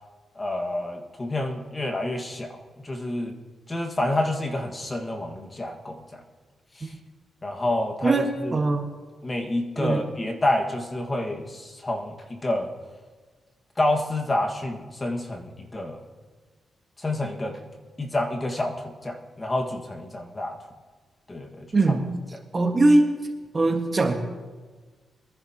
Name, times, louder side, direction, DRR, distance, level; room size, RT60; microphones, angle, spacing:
voice 1, 0.4-3.3 3.7-6.2 6.7-6.9 7.4-8.1 8.4-8.6 9.2-12.7 13.8-16.0 17.0-17.6 18.0-20.6 21.3-22.0, left 1 dB, 30° left, 2 dB, 1.8 m, -28 dB
voice 2, 8.0-8.9 9.8-10.0 21.7-22.0 22.5-23.1 23.5-24.1, right 2 dB, 35° right, 3 dB, 1.6 m, -21 dB
23.0 x 10.5 x 3.0 m, 1.4 s
cardioid pair, 75°, 0 cm